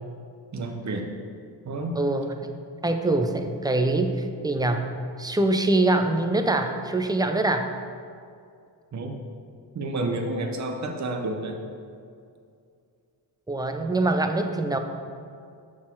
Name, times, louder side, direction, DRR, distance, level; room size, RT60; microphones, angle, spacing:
voice 1, 0.5-1.1 1.6-2.0 8.9-9.1 9.7-11.6, right 2 dB, 40° right, 3 dB, 0.8 m, -30 dB
voice 2, 2.0-2.3 2.8-4.9 5.2-7.7 13.5-14.8, right 2 dB, 10° right, 6 dB, 0.4 m, -24 dB
6.4 x 3.7 x 6.0 m, 2.4 s
cardioid pair, 90°, 43 cm